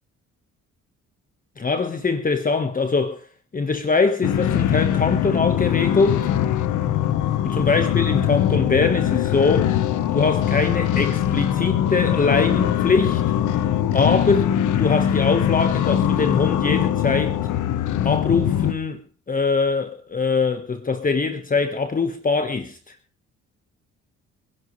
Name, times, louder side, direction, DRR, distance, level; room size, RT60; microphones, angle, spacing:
voice 1, 1.6-3.2 3.5-6.2 7.4-9.7 10.1-13.2 13.9-17.4 18.0-19.0 19.3-22.9, left 4 dB, 30° left, 1.5 m, -22 dB
sound 1, 4.2-18.7, left 10 dB, 80° left, 1.3 m, -22 dB
27.0 x 11.0 x 3.3 m
cardioid pair, 90°, 30 cm